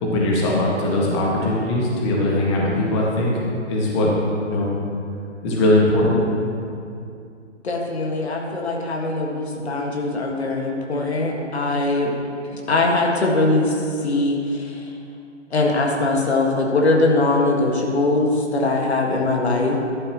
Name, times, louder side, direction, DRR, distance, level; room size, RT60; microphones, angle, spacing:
voice 1, 0.0-3.3 3.7-4.1 4.5-4.7 5.4-6.2, left 1 dB, 25° left, -4 dB, 1.7 m, -20 dB
voice 2, 7.6-12.1 12.5-13.7 14.0-14.8 15.5-19.8, left 2 dB, 60° left, 0 dB, 1.9 m, -21 dB
13.0 x 11.0 x 3.1 m, 2.5 s
figure-of-eight pair, 140°, 37 cm